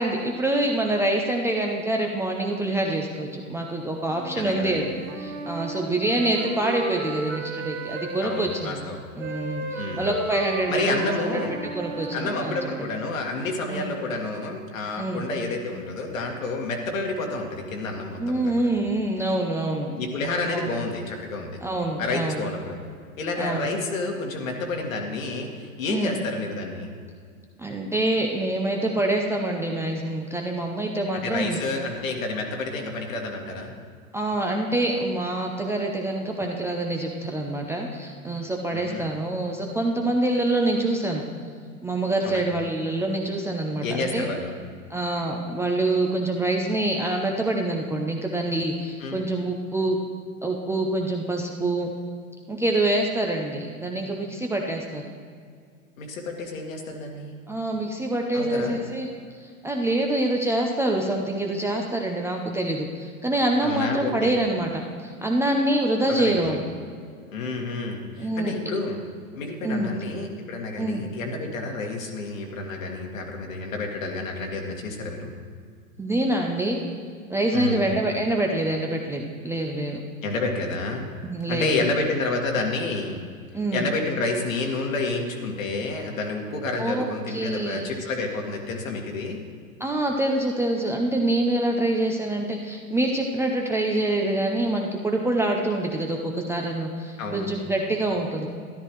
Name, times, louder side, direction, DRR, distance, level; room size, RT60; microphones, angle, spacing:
voice 1, 0.0-8.8 9.2-11.0 11.3-11.4 11.7-12.9 13.7-13.8 15.0-15.2 18.2-19.9 20.5-20.7 21.6-22.4 23.4-23.7 25.9-26.2 27.6-31.6 34.1-41.3 41.8-44.3 44.9-50.0 50.4-51.9 52.5-55.1 57.5-59.1 59.6-66.6 68.2-68.5 69.6-70.0 70.8-71.1 76.0-76.8 77.3-80.0 81.2-81.9 83.5-83.9 86.8-87.8 89.8-98.5, right 1 dB, 5° right, 1 dB, 0.5 m, -26 dB
Wind instrument woodwind instrument, 4.1-8.5 9.2-12.9, right 4 dB, 65° right, 1.4 m, -34 dB
voice 2, 4.3-4.8 8.2-9.0 9.8-10.1 10.7-11.6 12.1-18.7 19.9-21.6 22.0-22.8 23.2-26.9 31.2-33.7 38.7-39.1 42.2-42.5 43.8-44.5 49.0-49.2 56.0-57.4 58.3-58.8 63.6-64.3 66.1-66.5 67.3-69.0 69.3-75.3 77.5-77.8 80.2-81.1 81.5-83.2 83.7-89.4 97.2-97.5, left 3 dB, 70° left, 1 dB, 2.0 m, -29 dB
13.0 x 11.5 x 3.1 m, 2.1 s
hypercardioid pair, 105°, 41 cm